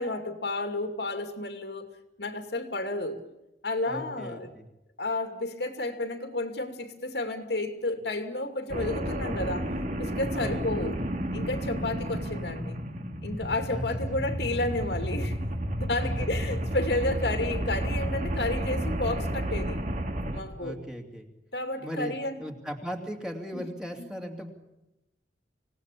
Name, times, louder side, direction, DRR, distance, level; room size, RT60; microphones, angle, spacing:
voice 1, 0.0-1.9 2.2-3.2 3.6-4.5 5.0-9.7 10.0-10.9 11.3-12.8 13.2-15.4 15.8-19.8 20.3-20.8 21.5-22.4 23.5-23.7 24.0-24.1, left 2 dB, 65° left, 6 dB, 2.6 m, -31 dB
voice 2, 3.8-4.6 10.3-10.7 11.8-12.1 13.7-14.3 16.0-16.6 20.6-21.3 21.8-24.5, equal, 5° right, 2 dB, 2.8 m, -38 dB
sound 1, 8.7-20.4, right 1 dB, 45° right, 2.4 m, -31 dB
26.0 x 18.5 x 8.5 m, 0.94 s
head